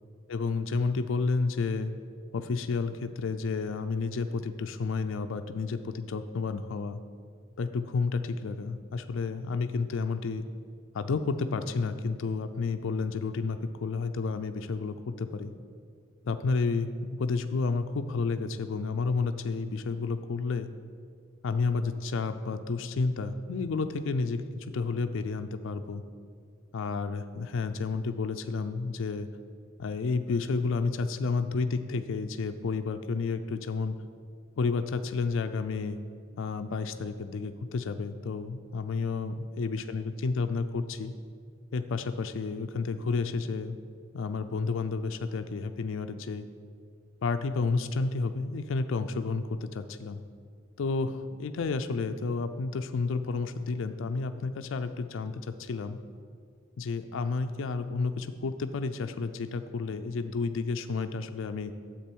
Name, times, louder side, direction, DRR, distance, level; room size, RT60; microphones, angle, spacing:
voice 1, 0.3-1.9 2.3-7.0 7.6-10.5 10.9-15.5 16.3-20.7 21.4-26.0 26.7-29.3 29.8-34.0 34.6-36.0 36.4-41.1 41.7-43.8 44.1-46.5 47.2-50.2 50.8-56.0 56.8-61.7, left 4 dB, 70° left, 8 dB, 0.4 m, -31 dB
10.0 x 7.4 x 4.5 m, 2.1 s
head